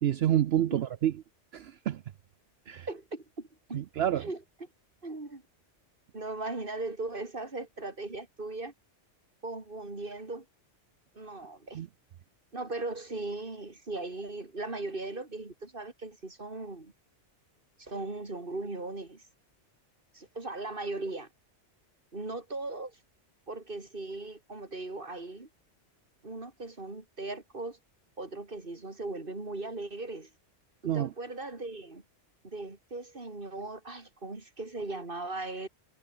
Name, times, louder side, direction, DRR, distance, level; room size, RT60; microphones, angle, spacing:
voice 1, 0.0-1.1 1.5-2.0 2.7-2.9 3.7-4.3 11.7-11.9 30.8-31.1, right 11 dB, 65° right, 0.8 m, -28 dB
voice 2, 2.9-3.8 4.1-4.7 5.0-5.4 6.1-8.7 9.4-10.4 11.1-11.8 12.5-16.9 17.8-19.3 20.1-21.3 22.1-23.0 23.5-25.5 26.2-27.8 28.2-30.3 30.9-32.0 32.4-35.7, right 2 dB, 45° right, 3.3 m, -38 dB
omnidirectional pair, 1.2 m